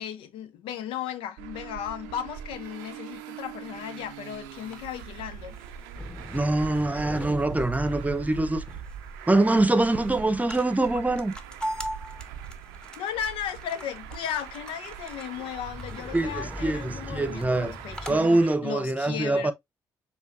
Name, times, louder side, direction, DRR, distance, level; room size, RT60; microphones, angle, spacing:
voice 1, 0.0-5.6 13.0-19.5, left 9 dB, 75° left, 0.5 m, -35 dB
Traffic noise roadway noise, 1.4-18.5, right 10 dB, 85° right, 0.5 m, -43 dB
sound 1, 4.5-18.2, equal, 10° left, 1.1 m, -40 dB
voice 2, 6.3-8.6 9.3-11.3 16.1-17.7 18.1-19.5, right 2 dB, 15° right, 0.8 m, -24 dB
6.7 x 2.9 x 2.5 m
hypercardioid pair, 45°, 9 cm